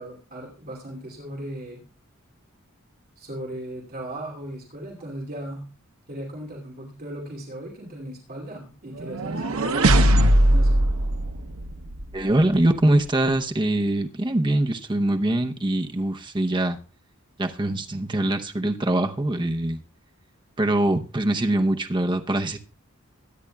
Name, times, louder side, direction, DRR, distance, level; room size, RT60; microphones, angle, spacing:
voice 1, 0.0-1.8 3.2-5.7 6.1-10.9, right 1 dB, 45° right, 2.7 m, -37 dB
sound 1, 9.0-12.1, right 1 dB, 70° right, 0.8 m, -20 dB
voice 2, 12.1-16.8 17.4-19.8 20.6-22.6, right 1 dB, 20° right, 0.8 m, -23 dB
22.0 x 9.6 x 2.3 m
head